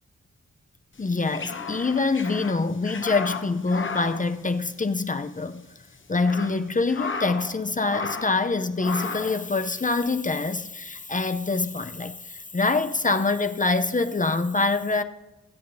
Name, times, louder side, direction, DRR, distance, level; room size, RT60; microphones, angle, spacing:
sound 1, 1.0-5.1 5.4-5.5 6.0-7.6 7.8-8.4 8.8-9.4, left 4 dB, 40° left, 1.0 m, -34 dB
voice 1, 1.0-5.6 6.1-15.0, left 3 dB, 25° left, 0.6 m, -25 dB
21.0 x 8.5 x 2.7 m
cardioid pair, 75°, 30 cm